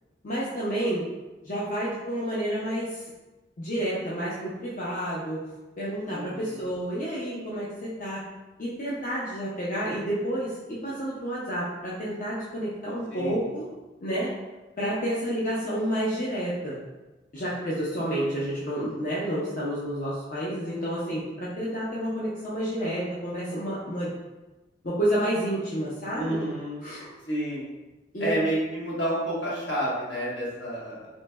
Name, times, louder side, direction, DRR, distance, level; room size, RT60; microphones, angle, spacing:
voice 1, 0.2-1.0 1.4-3.0 3.6-5.4 5.8-8.2 8.6-13.7 14.0-14.3 14.8-16.8 17.3-24.1 24.8-26.4 26.8-27.1 28.1-28.3, right 1 dB, 45° left, -7 dB, 0.6 m, -30 dB
voice 2, 6.1-6.6 13.1-13.5 26.1-26.8 27.3-27.7 28.2-31.1, right 1 dB, 75° left, -7 dB, 1.4 m, -30 dB
4.0 x 3.1 x 2.2 m, 1.1 s
head